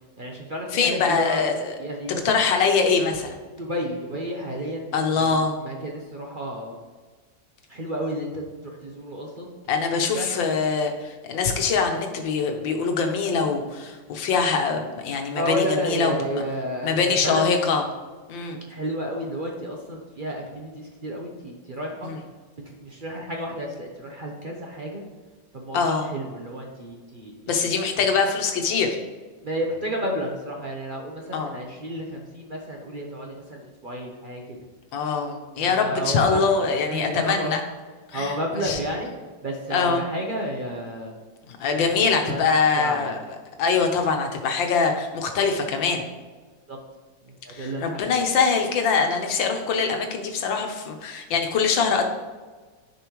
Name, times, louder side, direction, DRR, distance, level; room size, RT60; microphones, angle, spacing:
voice 1, 0.2-1.4 1.8-2.4 3.6-6.8 7.7-9.6 9.9-10.3 15.3-17.4 18.7-22.1 22.6-25.0 25.5-27.6 29.4-34.6 35.6-36.4 36.9-37.6 38.1-39.1 39.4-41.1 41.8-42.5 42.8-43.2 46.7-46.8 47.2-48.2, equal, 40° right, 0 dB, 0.7 m, -31 dB
voice 2, 0.7-1.7 2.2-3.3 4.9-5.5 9.7-16.4 16.8-17.8 18.3-18.6 22.0-22.2 25.7-26.1 27.5-29.0 31.3-31.5 34.9-37.6 38.1-38.8 39.7-40.0 41.5-43.2 43.6-46.0 47.5-52.0, left 5 dB, 80° left, 4 dB, 1.7 m, -23 dB
10.5 x 5.4 x 3.1 m, 1.4 s
omnidirectional pair, 2.0 m